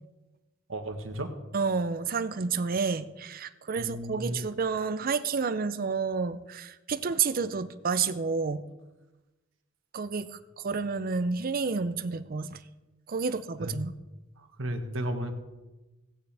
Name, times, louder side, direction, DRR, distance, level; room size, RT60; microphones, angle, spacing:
voice 1, 0.7-1.3 3.8-4.4 13.6-13.7 14.4-15.3, right 1 dB, 75° right, 6 dB, 1.3 m, -34 dB
voice 2, 1.5-8.6 9.9-10.4 10.6-12.6 13.1-13.9, right 5 dB, 45° right, 13 dB, 0.6 m, -30 dB
16.0 x 9.7 x 3.4 m, 1.1 s
head